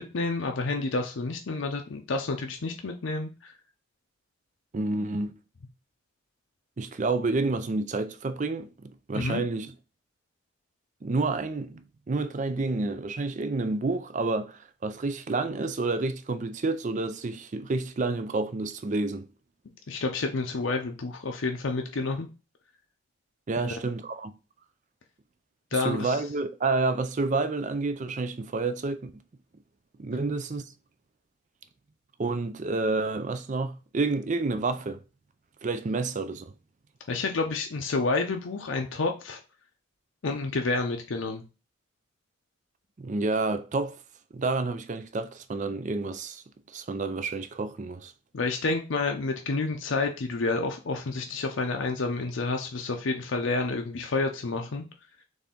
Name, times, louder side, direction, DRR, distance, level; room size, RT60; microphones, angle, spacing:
voice 1, 0.0-3.3 9.1-9.4 19.9-22.3 23.6-23.7 25.7-26.2 37.1-39.4 40.2-41.4 48.3-54.8, left 3 dB, 70° left, 0.6 m, -29 dB
voice 2, 4.7-5.3 6.8-9.7 11.0-19.3 23.5-24.3 25.7-29.1 30.0-30.7 32.2-35.0 35.6-36.4 43.0-44.0 44.3-46.4 46.7-48.1, right 3 dB, 35° right, 0.4 m, -29 dB
4.2 x 3.4 x 3.6 m
head